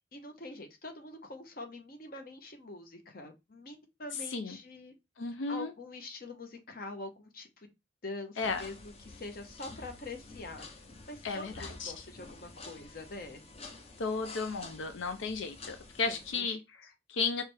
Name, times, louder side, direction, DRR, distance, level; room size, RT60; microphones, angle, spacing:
voice 1, 0.1-4.9 5.5-7.7 8.0-10.7 11.1-13.4 16.1-16.5, left 2 dB, 50° left, 1.0 m, -45 dB
voice 2, 5.2-5.7 8.4-8.6 11.2-11.9 14.0-17.4, left 4 dB, 90° left, 0.5 m, -34 dB
sound 1, 8.4-16.3, left 3 dB, 35° left, 0.7 m, -49 dB
4.9 x 3.2 x 3.3 m
head